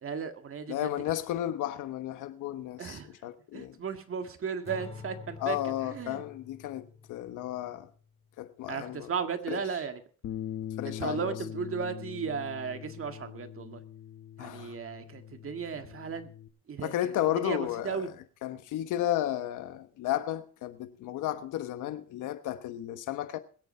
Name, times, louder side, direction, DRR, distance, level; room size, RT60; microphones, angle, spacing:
voice 1, 0.0-0.9 2.8-3.1 3.5-6.2 8.7-10.0 10.8-13.8 14.4-16.3 16.7-18.1, right 6 dB, 45° right, 1.9 m, -35 dB
voice 2, 0.7-3.7 5.4-7.9 8.4-9.1 9.5-9.6 10.8-11.3 14.4-14.7 16.8-18.1 18.4-23.4, left 13 dB, 90° left, 1.2 m, -33 dB
Acoustic guitar / Strum, 4.6-8.0, left 5 dB, 20° left, 3.3 m, -47 dB
Bass guitar, 10.2-16.5, left 10 dB, 65° left, 1.6 m, -42 dB
21.5 x 8.5 x 4.4 m
cardioid pair, 90°, 30 cm